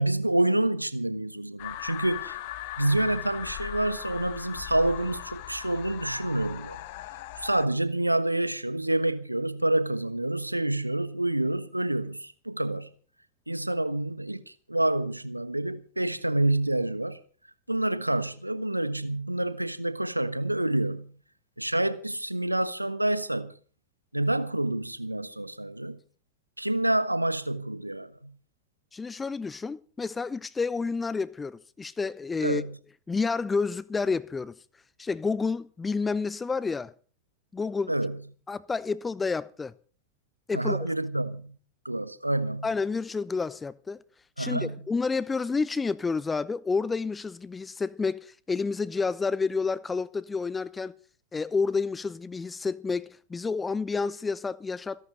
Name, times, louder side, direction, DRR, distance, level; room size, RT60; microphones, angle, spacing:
voice 1, 0.0-2.4 2.8-6.8 7.4-12.9 13.5-14.4 14.7-17.2 17.7-21.2 21.6-23.6 24.1-26.0 26.6-28.4 32.4-32.8 37.9-38.2 40.5-41.6 41.8-42.7 44.4-44.9, right 1 dB, 85° right, 1.3 m, -28 dB
sound 1, 1.6-7.6, left 15 dB, 50° left, 1.2 m, -39 dB
voice 2, 28.9-32.6 33.1-34.5 35.0-36.9 37.5-37.9 38.5-39.7 40.5-40.8 42.6-44.0 44.4-50.9 51.3-55.0, left 4 dB, 15° left, 0.8 m, -29 dB
27.0 x 11.0 x 3.9 m
figure-of-eight pair, 90°, 0 cm